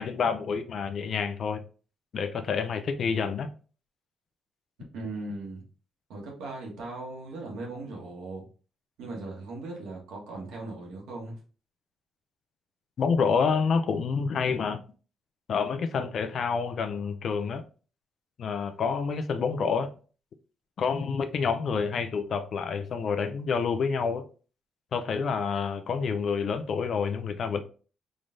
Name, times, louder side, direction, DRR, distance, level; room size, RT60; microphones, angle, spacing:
voice 1, 0.0-1.6 2.1-3.5 13.0-14.8 15.5-17.6 18.4-19.9 20.8-24.2 24.9-27.6, left 5 dB, 60° left, 0.5 m, -28 dB
voice 2, 4.9-5.6 6.1-8.4 9.0-11.3, right 2 dB, 85° right, 1.4 m, -38 dB
3.8 x 3.2 x 2.6 m
cardioid pair, 90°, 0 cm